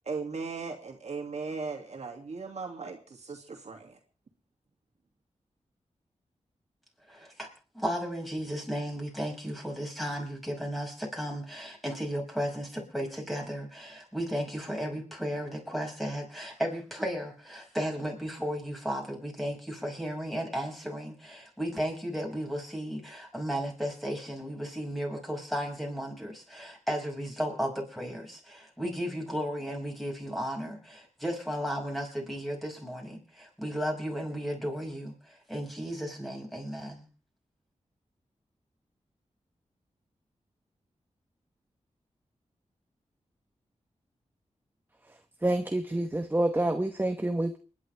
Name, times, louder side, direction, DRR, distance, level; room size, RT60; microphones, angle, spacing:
voice 1, 0.1-4.0, right 4 dB, 65° right, 3 dB, 2.3 m, -37 dB
voice 2, 7.1-7.5 7.7-37.1, equal, ahead, 0 dB, 5.8 m, -34 dB
voice 3, 45.4-47.6, right 1 dB, 15° right, 7 dB, 1.0 m, -27 dB
29.5 x 10.5 x 3.4 m, 0.37 s
wide cardioid pair, 95°, 12 cm